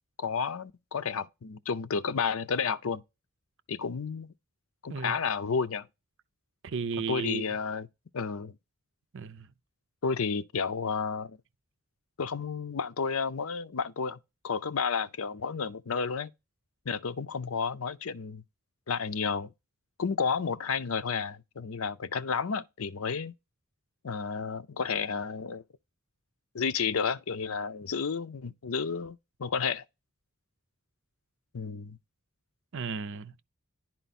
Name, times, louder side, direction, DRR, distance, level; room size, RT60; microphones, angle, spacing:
voice 1, 0.2-3.0 3.7-4.3 4.8-5.9 7.1-7.9 8.1-8.5 10.0-11.4 12.2-14.2 14.4-16.3 16.9-18.4 18.9-19.5 20.0-23.3 24.0-25.6 26.5-29.8 31.5-32.0, left 5 dB, 75° left, 0.6 m, -31 dB
voice 2, 6.6-7.5 9.1-9.5 32.7-33.3, right 5 dB, 60° right, 0.6 m, -34 dB
11.0 x 4.5 x 4.2 m
head